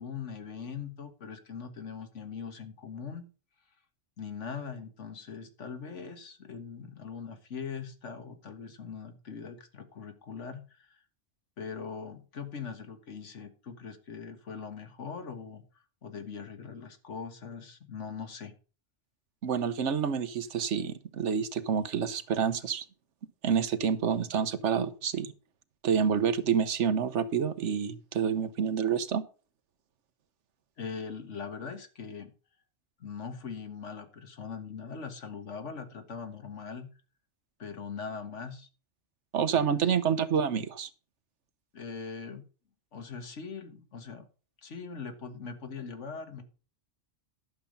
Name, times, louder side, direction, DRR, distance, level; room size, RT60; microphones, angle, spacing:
voice 1, 0.0-3.3 4.2-11.0 11.6-15.6 16.0-18.5 30.8-32.3 33.0-36.9 37.6-38.7 39.4-39.9 41.7-42.4 42.9-44.3 44.6-46.4, left 6 dB, 80° left, 8 dB, 1.8 m, -41 dB
voice 2, 19.4-22.8 23.4-25.3 25.8-29.2 39.3-40.9, right 7 dB, 80° right, 13 dB, 1.2 m, -28 dB
11.5 x 7.0 x 5.2 m, 0.36 s
omnidirectional pair, 1.2 m